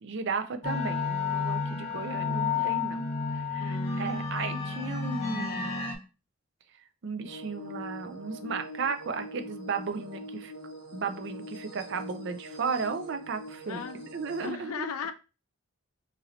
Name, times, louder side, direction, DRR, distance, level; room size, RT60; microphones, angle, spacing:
voice 1, 0.0-3.0 3.3-5.8 7.0-10.5 10.9-14.9, right 5 dB, 50° right, 0.4 m, -35 dB
sound 1, 0.6-5.9, left 5 dB, 30° left, 0.8 m, -31 dB
voice 2, 2.2-2.7 3.6-4.1 13.7-14.1 14.4-15.1, left 6 dB, 80° left, 0.4 m, -38 dB
sound 2, 7.2-14.5, equal, 85° right, 1.2 m, -43 dB
3.0 x 2.8 x 3.8 m
head